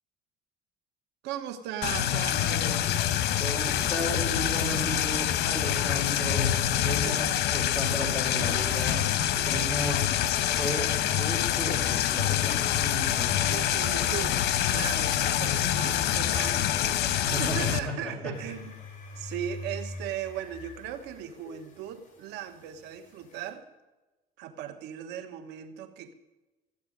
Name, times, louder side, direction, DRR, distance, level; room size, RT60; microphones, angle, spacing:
voice 1, 1.2-3.1 6.9-7.3 13.4-18.8 19.2-23.7 24.4-26.1, right 10 dB, 90° right, 8 dB, 1.3 m, -38 dB
sound 1, 1.8-17.8, left 11 dB, 75° left, 1.2 m, -26 dB
voice 2, 3.4-6.5 6.8-7.3 7.5-9.0 9.5-10.0 10.6-10.9 11.2-13.5 17.1-18.3, left 1 dB, 10° left, 0 dB, 5.3 m, -34 dB
sound 2, 18.3-23.5, left 2 dB, 50° left, 4.9 m, -44 dB
14.5 x 8.8 x 9.5 m, 1.1 s
cardioid pair, 110°, 17 cm